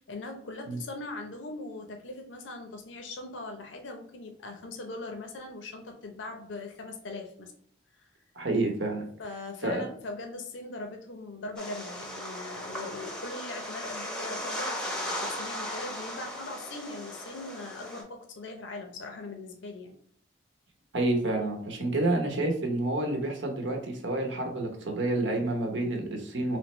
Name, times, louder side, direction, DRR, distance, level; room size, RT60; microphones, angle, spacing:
voice 1, 0.0-7.5 8.0-8.1 9.2-19.9, left 2 dB, 75° left, 3 dB, 0.6 m, -40 dB
voice 2, 8.3-9.1 9.6-9.8 20.9-26.6, right 2 dB, 75° right, 2 dB, 0.9 m, -29 dB
sound 1, 11.6-18.0, left 1 dB, 5° left, 0.7 m, -37 dB
3.4 x 3.2 x 3.1 m, 0.62 s
head